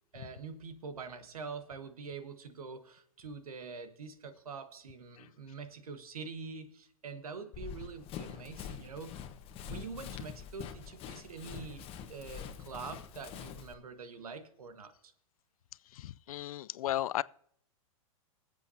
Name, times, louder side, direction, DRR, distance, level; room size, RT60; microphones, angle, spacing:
voice 1, 0.1-9.2 9.6-15.1, right 5 dB, 90° right, 1.5 m, -45 dB
Run, 7.5-13.7, left 8 dB, 30° left, 1.2 m, -45 dB
voice 2, 15.9-17.2, left 13 dB, 75° left, 0.4 m, -35 dB
22.0 x 8.2 x 2.8 m
hypercardioid pair, 125°, 18 cm